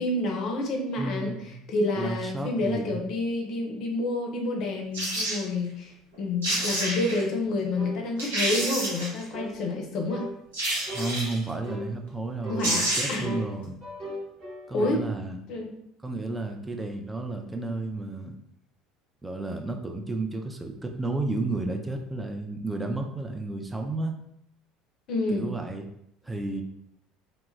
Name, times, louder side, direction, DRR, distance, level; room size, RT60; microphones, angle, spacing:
voice 1, 0.0-5.9 6.2-10.2 12.5-13.4 14.7-15.0 15.5-15.7 25.1-25.5, left 2 dB, 50° left, 1 dB, 0.5 m, -29 dB
voice 2, 1.0-1.6 1.9-3.0 10.9-13.8 14.7-15.4 16.0-18.4 19.2-24.1 25.3-25.9 26.2-26.6, right 2 dB, 10° right, 3 dB, 0.4 m, -32 dB
sound 1, 4.9-5.4 6.1-6.2 6.4-7.2 7.8-7.9 8.2-9.2 10.5-11.4 12.3-12.4 12.6-13.3 13.6-13.7, right 1 dB, 75° right, 0.7 m, -28 dB
sound 2, 7.8-8.0 8.5-8.8 9.3-9.6 10.1-10.3 10.9-11.1 11.7-11.9 12.4-12.7 13.2-15.0, left 1 dB, 40° right, 0.9 m, -37 dB
2.1 x 2.0 x 3.1 m, 0.74 s
figure-of-eight pair, 65°, 0 cm